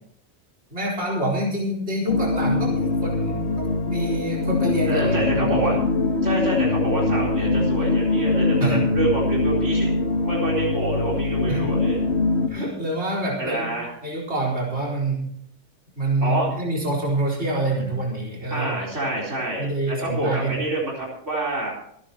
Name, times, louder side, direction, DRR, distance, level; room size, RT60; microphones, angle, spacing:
voice 1, 0.7-5.5 8.6-8.8 11.5-11.7 12.5-13.7 14.0-15.3 16.0-18.7 19.6-20.5, right 1 dB, 65° right, -3 dB, 4.5 m, -26 dB
sound 1, 2.1-12.5, left 2 dB, 65° left, 1.6 m, -23 dB
voice 2, 4.9-5.9 6.2-9.9 10.2-12.0 13.4-14.0 16.2-16.5 18.5-21.7, right 1 dB, 80° right, -2 dB, 4.6 m, -27 dB
25.5 x 10.0 x 3.0 m, 0.68 s
omnidirectional pair, 1.2 m